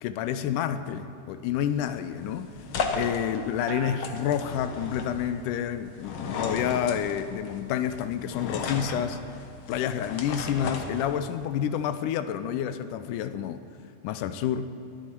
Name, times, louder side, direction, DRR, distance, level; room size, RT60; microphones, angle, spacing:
voice 1, 0.0-2.5 3.0-9.2 9.7-13.6 14.0-14.7, left 9 dB, 85° left, 11 dB, 2.1 m, -29 dB
sound 1, 1.6-11.5, left 4 dB, 60° left, 1.8 m, -35 dB
sound 2, 3.7-5.4 5.8-6.4, right 9 dB, 70° right, 2.0 m, -44 dB
22.0 x 12.0 x 4.5 m, 2.7 s
omnidirectional pair, 3.6 m